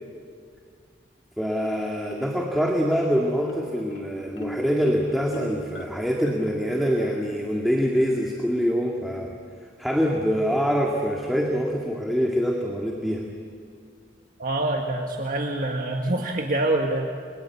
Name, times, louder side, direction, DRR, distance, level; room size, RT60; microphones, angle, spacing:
voice 1, 1.4-9.3 9.8-13.3, equal, ahead, -1 dB, 2.0 m, -25 dB
Marimba xylophone, 1.6-2.5 3.0-8.5, right 1 dB, 70° left, 2.2 m, -40 dB
voice 2, 14.4-17.1, right 2 dB, 45° right, 2 dB, 1.7 m, -25 dB
29.5 x 22.5 x 8.6 m, 2.2 s
head